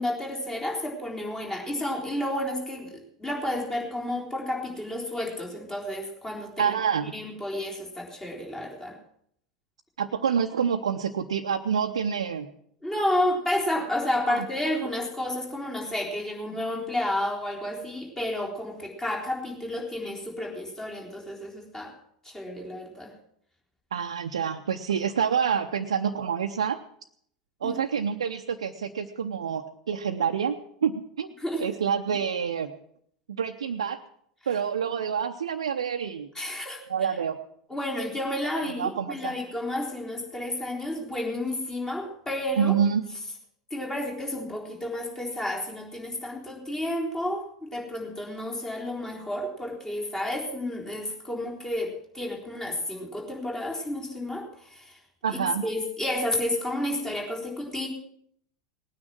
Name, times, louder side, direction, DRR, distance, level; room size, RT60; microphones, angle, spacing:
voice 1, 0.0-6.7 7.1-9.0 12.8-21.9 22.2-23.1 27.6-27.8 31.4-31.7 36.4-36.8 37.7-42.7 43.7-55.0 55.3-57.9, left 1 dB, 15° left, -1 dB, 3.9 m, -31 dB
voice 2, 6.6-7.1 10.0-12.5 14.2-14.5 23.9-26.8 27.6-31.3 31.6-32.7 33.3-34.0 34.5-36.3 36.9-37.4 38.7-39.4 42.6-43.0 55.2-55.6, right 7 dB, 75° right, 3 dB, 0.8 m, -27 dB
19.5 x 9.7 x 6.1 m, 0.68 s
figure-of-eight pair, 85°, 3 cm